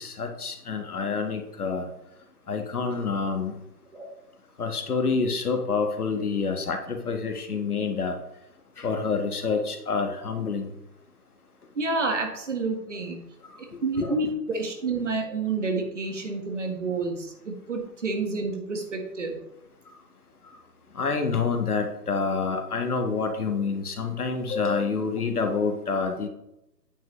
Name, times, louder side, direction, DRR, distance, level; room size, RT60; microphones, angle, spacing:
voice 1, 0.0-1.8 2.5-3.6 4.6-8.1 8.8-10.7 14.0-14.1 20.9-26.3, left 4 dB, 60° left, 4 dB, 1.6 m, -27 dB
voice 2, 11.7-13.2 13.8-19.4, right 3 dB, 45° right, 3 dB, 1.6 m, -29 dB
9.1 x 8.0 x 3.2 m, 0.86 s
hypercardioid pair, 175°, 50 cm